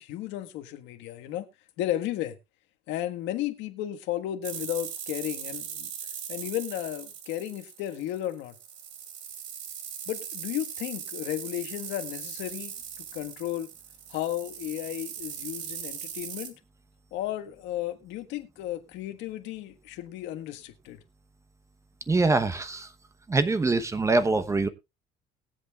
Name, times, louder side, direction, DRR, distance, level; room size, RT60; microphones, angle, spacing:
voice 1, 0.0-1.5 1.8-2.4 2.9-5.9 6.3-8.5 10.1-13.7 14.1-16.6 17.1-21.0, left 13 dB, 80° left, 1.6 m, -34 dB
sound 1, 4.4-16.5, right 8 dB, 80° right, 2.7 m, -39 dB
voice 2, 22.1-22.9 23.3-24.7, right 3 dB, 15° right, 0.9 m, -24 dB
21.0 x 8.1 x 2.4 m
cardioid pair, 145°, 19 cm